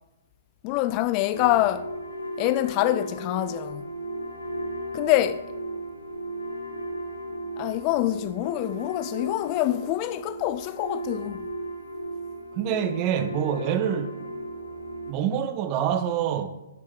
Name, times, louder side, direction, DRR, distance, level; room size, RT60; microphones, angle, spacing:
voice 1, 0.6-1.9 2.4-3.8 4.9-5.4 7.6-11.4, left 15 dB, 35° left, 0.3 m, -25 dB
sound 1, 1.3-15.1, right 1 dB, 90° left, 1.0 m, -35 dB
voice 2, 12.6-14.2 15.1-16.5, right 9 dB, 35° right, 0.7 m, -26 dB
10.5 x 5.7 x 4.7 m
figure-of-eight pair, 120°, 0 cm